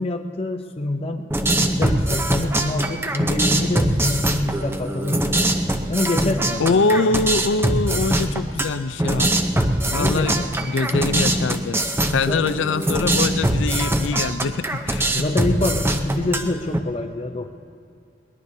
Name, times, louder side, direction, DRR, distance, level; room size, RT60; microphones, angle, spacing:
voice 1, 0.0-5.4 5.9-7.1 9.9-10.7 12.3-12.5 15.1-17.5, left 2 dB, 30° left, 4 dB, 0.7 m, -26 dB
sound 1, 1.3-16.8, right 1 dB, 10° right, 0.7 m, -22 dB
voice 2, 6.6-9.3 9.9-10.4 10.7-15.2, left 4 dB, 80° left, 13 dB, 0.5 m, -23 dB
21.5 x 20.5 x 2.8 m, 2.4 s
head